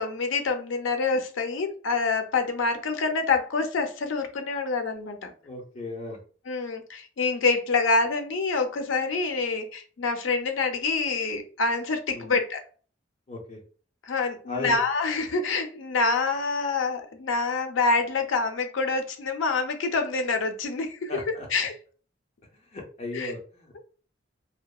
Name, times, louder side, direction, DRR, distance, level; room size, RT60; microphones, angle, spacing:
voice 1, 0.0-5.3 6.5-12.6 14.0-21.7 23.1-23.3, left 3 dB, 80° left, 6 dB, 0.5 m, -26 dB
voice 2, 5.4-6.2 12.1-12.3 13.3-13.6 14.5-14.8 21.1-21.5 22.7-23.7, left 2 dB, 35° left, 0 dB, 0.5 m, -36 dB
2.8 x 2.1 x 2.2 m, 0.41 s
head